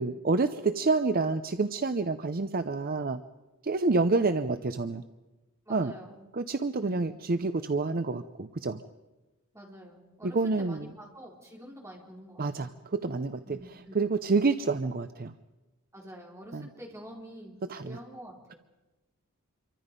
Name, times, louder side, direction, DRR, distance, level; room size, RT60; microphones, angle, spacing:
voice 1, 0.0-3.2 3.6-5.0 5.7-5.9 6.3-8.8 10.2-10.9 12.4-15.3 16.5-16.7 17.7-18.0, right 3 dB, 40° right, 10 dB, 0.6 m, -28 dB
voice 2, 5.7-6.2 6.8-7.2 9.5-12.8 13.5-14.1 15.9-17.5 17.8-18.6, equal, 15° right, -1 dB, 4.0 m, -47 dB
27.5 x 24.0 x 5.3 m, 1.1 s
head